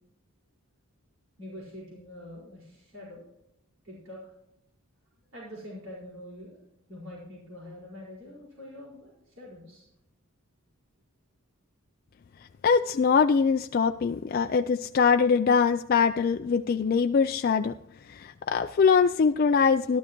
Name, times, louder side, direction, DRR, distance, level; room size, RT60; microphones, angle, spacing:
voice 1, 1.4-3.2 3.8-4.2 5.3-6.6 6.9-9.9, left 1 dB, 70° right, -5 dB, 4.9 m, -44 dB
voice 2, 12.6-17.7 18.1-20.0, left 5 dB, 45° left, 7 dB, 0.3 m, -23 dB
13.5 x 12.5 x 3.0 m, 0.84 s
head